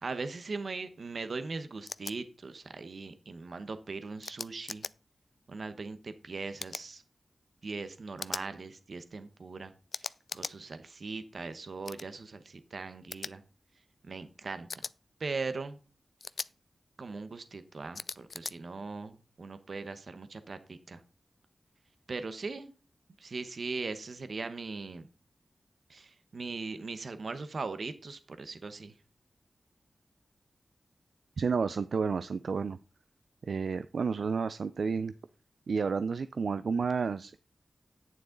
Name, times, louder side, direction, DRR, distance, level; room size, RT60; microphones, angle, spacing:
voice 1, 0.0-4.9 5.5-7.0 7.6-13.4 14.0-14.9 15.2-15.8 17.0-21.0 22.1-22.7 23.2-25.1 25.9-29.0, right 4 dB, 70° right, 10 dB, 1.1 m, -40 dB
sound 1, 1.9-2.1 4.2-4.9 6.6-6.9 8.2-8.5 9.9-10.5 11.8-12.1 13.1-13.3 14.7-14.9 16.2-16.5 17.9-18.5, left 4 dB, 70° left, 0.4 m, -39 dB
voice 2, 31.4-32.8 33.5-35.1 35.7-37.4, right 5 dB, 85° right, 13 dB, 0.4 m, -31 dB
11.0 x 9.3 x 3.9 m, 0.34 s
cardioid pair, 55°, 0 cm